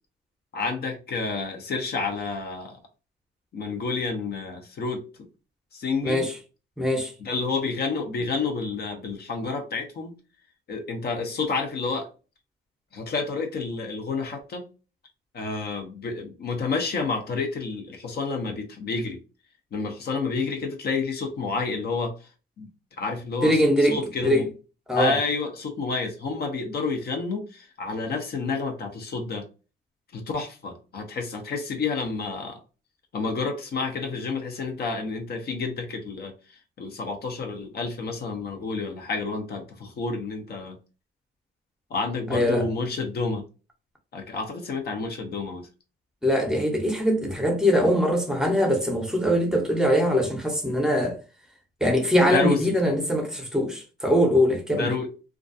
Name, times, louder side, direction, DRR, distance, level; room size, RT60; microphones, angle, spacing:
voice 1, 0.5-2.8 3.5-5.0 5.7-6.2 7.2-10.1 10.7-12.1 12.9-14.7 15.3-19.2 19.7-22.1 22.6-22.7 23.0-24.5 24.9-29.5 30.1-32.6 33.1-36.3 36.8-40.8 41.9-43.4 44.1-45.7 52.3-52.6 54.7-55.1, left 4 dB, 55° left, 0.6 m, -29 dB
voice 2, 6.0-6.3 6.8-7.1 23.4-24.5 24.9-25.2 42.3-42.7 46.2-51.2 51.8-54.9, equal, 5° right, 0.7 m, -22 dB
2.3 x 2.2 x 2.5 m
cardioid pair, 90°, 20 cm